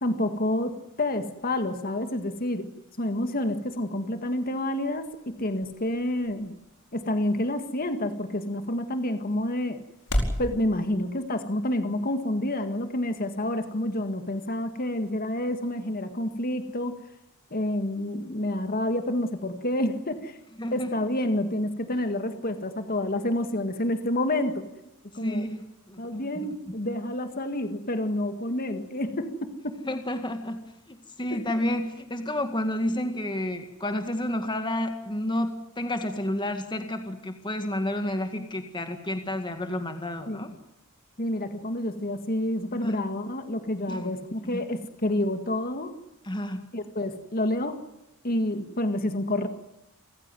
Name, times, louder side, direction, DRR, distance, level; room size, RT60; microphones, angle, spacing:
voice 1, 0.0-2.7 3.0-6.5 6.9-9.8 10.4-17.0 17.5-20.4 20.7-24.7 25.1-25.5 26.0-29.8 31.3-31.4 40.3-40.5 41.2-45.9 46.7-47.8 48.2-49.5, left 1 dB, 40° left, 8 dB, 1.9 m, -28 dB
sound 1, 4.2-10.5, equal, 75° left, 4.8 m, -36 dB
voice 2, 20.6-20.9 25.2-26.0 26.4-26.7 29.8-30.6 30.9-40.5 42.8-43.0 43.9-44.1 44.5-44.6 46.2-46.7, left 1 dB, 20° left, 6 dB, 2.0 m, -30 dB
28.0 x 15.5 x 9.1 m, 0.92 s
head